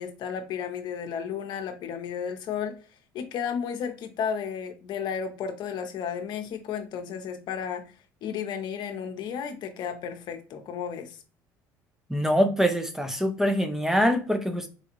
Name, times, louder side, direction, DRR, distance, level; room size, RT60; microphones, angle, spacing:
voice 1, 0.0-2.8 3.1-7.8 8.2-11.2, left 7 dB, 60° left, 0.7 m, -33 dB
voice 2, 12.1-14.7, equal, 5° right, 0.5 m, -24 dB
3.9 x 2.3 x 2.9 m
supercardioid pair, 85°, 8 cm